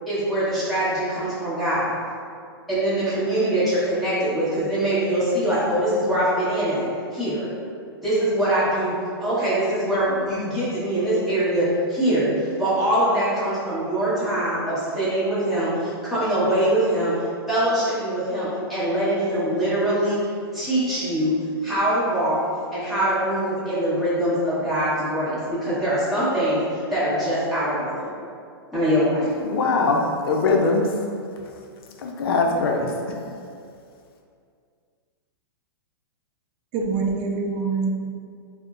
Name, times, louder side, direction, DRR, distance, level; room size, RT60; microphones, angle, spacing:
voice 1, 0.1-2.0 2.7-6.9 7.1-7.5 8.0-17.1 17.5-20.2 20.5-21.3 21.6-22.4 22.7-28.0 28.7-29.3, right 1 dB, ahead, -13 dB, 1.0 m, -23 dB
voice 2, 29.4-30.9 32.0-32.9, left 3 dB, 70° left, 2 dB, 0.5 m, -21 dB
voice 3, 36.7-37.9, right 4 dB, 35° right, 1 dB, 0.3 m, -24 dB
4.1 x 2.0 x 2.4 m, 2.3 s
hypercardioid pair, 150°, 13 cm